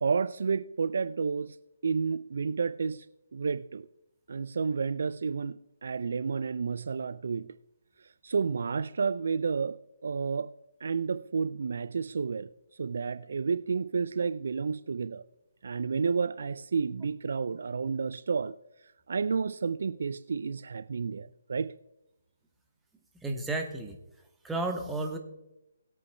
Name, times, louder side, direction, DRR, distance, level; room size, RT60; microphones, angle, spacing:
voice 1, 0.0-1.6 1.8-3.1 3.3-3.9 4.3-5.6 5.8-7.5 8.2-9.8 10.0-10.5 10.8-12.5 12.8-15.2 15.6-18.5 19.1-21.7, right 5 dB, 60° right, 0.4 m, -30 dB
voice 2, 23.2-24.0 24.4-25.2, right 2 dB, 5° right, 1.2 m, -32 dB
20.5 x 8.4 x 2.3 m
figure-of-eight pair, 140°, 0 cm